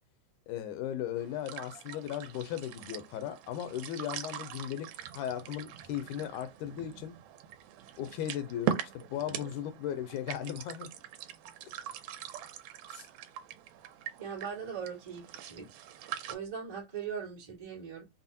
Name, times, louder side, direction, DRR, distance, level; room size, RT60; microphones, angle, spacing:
voice 1, 0.5-7.2 8.0-10.9 12.9-13.1, left 10 dB, 80° left, 1.9 m, -37 dB
sound 1, 1.2-16.4, right 10 dB, 80° right, 1.9 m, -42 dB
voice 2, 14.2-15.8 16.3-18.0, right 7 dB, 25° right, 0.5 m, -40 dB
5.5 x 2.1 x 2.6 m
omnidirectional pair, 3.6 m